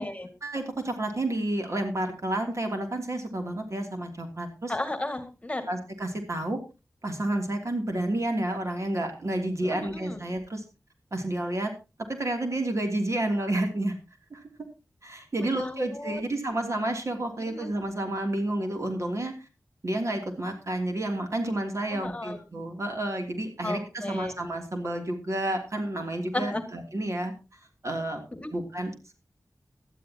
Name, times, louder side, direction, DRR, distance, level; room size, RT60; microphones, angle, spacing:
voice 1, 0.4-4.7 5.7-6.6 7.0-10.6 11.1-11.7 12.1-13.9 14.3-14.4 15.0-19.3 19.8-27.3 27.8-28.2 28.5-29.1, right 1 dB, 55° right, 3 dB, 3.0 m, -30 dB
voice 2, 4.7-5.7 9.6-10.2 15.4-16.2 17.4-17.7 21.9-22.4 23.6-24.4 26.3-26.6 28.3-28.5, left 1 dB, 20° left, 7 dB, 2.2 m, -34 dB
18.5 x 12.0 x 2.9 m, 0.29 s
wide cardioid pair, 90°, 6 cm